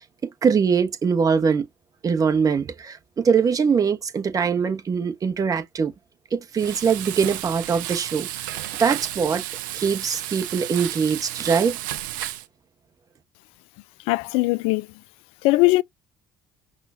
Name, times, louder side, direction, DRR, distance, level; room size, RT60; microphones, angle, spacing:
voice 1, 0.2-1.7 2.0-5.9 6.3-8.3 8.8-9.4 9.7-11.8, right 6 dB, 35° right, 1.1 m, -22 dB
Frying (food), 6.5-12.5, right 14 dB, 80° right, 0.5 m, -32 dB
voice 2, 14.1-14.9 15.4-15.8, left 21 dB, 65° left, 0.4 m, -19 dB
5.6 x 2.4 x 2.6 m
hypercardioid pair, 65°, 10 cm